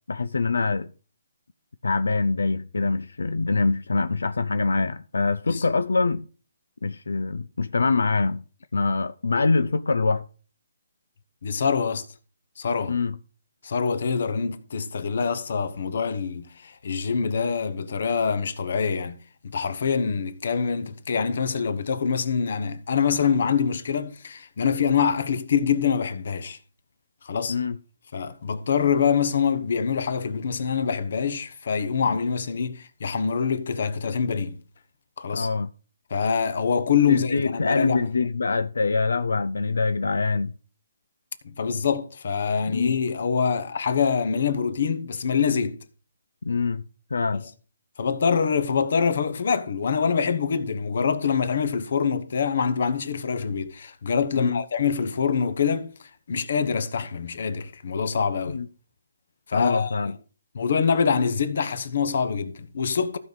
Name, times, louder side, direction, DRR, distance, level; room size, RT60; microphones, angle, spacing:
voice 1, 0.1-0.9 1.8-6.2 6.8-8.4 8.7-10.2 12.9-13.1 27.5-27.8 35.3-35.7 37.1-40.5 42.7-43.0 46.4-46.8 47.1-47.4 54.4-54.6 58.5-58.7 59.5-60.1, left 4 dB, 90° left, 0.5 m, -24 dB
voice 2, 11.4-12.1 12.6-13.0 13.6-19.2 19.4-26.6 27.2-27.6 28.1-34.6 35.2-35.5 36.1-38.1 41.4-45.8 47.3-47.5 48.0-55.9 56.3-58.6 59.5-59.9 60.5-63.2, left 6 dB, 55° left, 1.1 m, -25 dB
15.0 x 5.4 x 4.0 m
hypercardioid pair, 160°, 0 cm